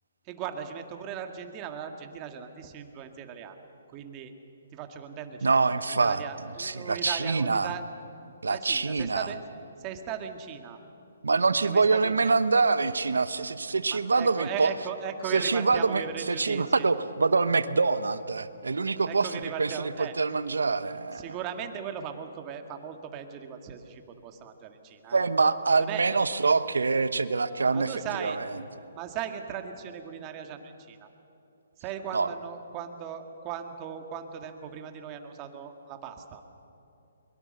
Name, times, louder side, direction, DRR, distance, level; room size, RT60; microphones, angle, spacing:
voice 1, 0.3-3.6 3.9-4.3 4.7-5.6 6.0-7.8 8.5-9.4 9.8-10.8 11.6-12.3 13.9-16.9 19.1-20.1 21.1-25.2 25.8-26.2 27.7-28.4 28.9-31.1 31.8-36.4, right 8 dB, 25° right, 6 dB, 1.9 m, -38 dB
voice 2, 5.4-6.2 6.6-7.7 8.4-9.3 11.2-14.7 15.3-21.3 25.1-28.5 32.1-32.3, right 4 dB, 85° right, 13 dB, 1.0 m, -25 dB
22.5 x 22.5 x 6.6 m, 2.8 s
hypercardioid pair, 145°, 0 cm